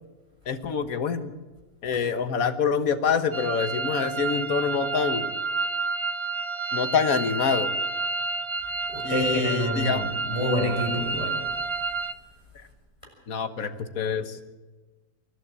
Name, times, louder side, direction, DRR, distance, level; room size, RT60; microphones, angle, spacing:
voice 1, 0.4-1.3 1.8-5.4 6.7-7.7 9.0-10.1 12.5-12.7 13.3-14.4, left 6 dB, 60° left, 11 dB, 1.6 m, -26 dB
sound 1, 3.3-12.1, right 4 dB, 30° right, 0.5 m, -30 dB
voice 2, 8.9-11.5, left 1 dB, 15° left, -1 dB, 5.6 m, -27 dB
26.5 x 11.5 x 8.7 m, 1.2 s
omnidirectional pair, 1.7 m